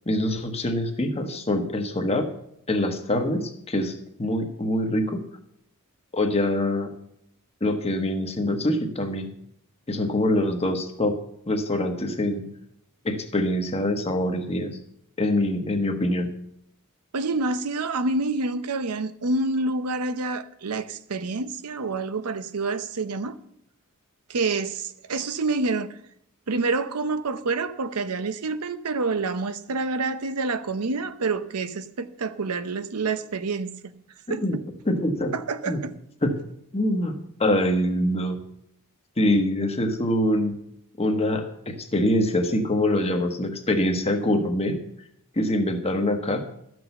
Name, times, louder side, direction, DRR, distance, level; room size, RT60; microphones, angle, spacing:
voice 1, 0.1-2.3 2.7-5.2 6.1-6.9 7.6-9.3 9.9-11.2 11.5-12.4 13.0-14.8 15.2-16.3 34.3-34.6 34.9-35.3 35.7-35.8 36.2-36.3 36.7-38.4 39.2-40.6 41.0-44.7 45.4-46.4, left 1 dB, 25° left, 1.2 m, -24 dB
voice 2, 17.1-23.3 24.3-26.0 26.5-33.9 34.3-34.4 35.3-35.9, right 3 dB, 85° right, 0.7 m, -27 dB
12.5 x 6.2 x 6.9 m
head